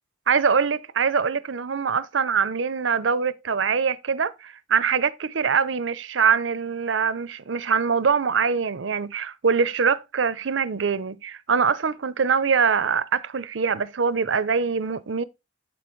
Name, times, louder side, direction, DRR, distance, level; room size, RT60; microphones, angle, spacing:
voice 1, 0.3-15.2, right 6 dB, 85° right, 0.6 m, -23 dB
9.0 x 7.8 x 3.1 m
head